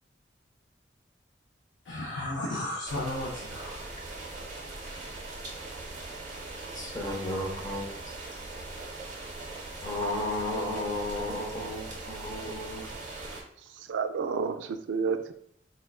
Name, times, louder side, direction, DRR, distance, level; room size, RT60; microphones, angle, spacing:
voice 1, 1.8-4.0, left 1 dB, 80° left, -3 dB, 0.5 m, -34 dB
sound 1, 2.9-13.4, right 2 dB, 45° right, 0.8 m, -40 dB
voice 2, 6.7-7.9 9.8-12.8, left 1 dB, 20° left, -1 dB, 0.7 m, -33 dB
voice 3, 13.8-15.3, right 5 dB, 90° right, 8 dB, 0.3 m, -30 dB
4.2 x 2.3 x 2.3 m, 0.66 s
head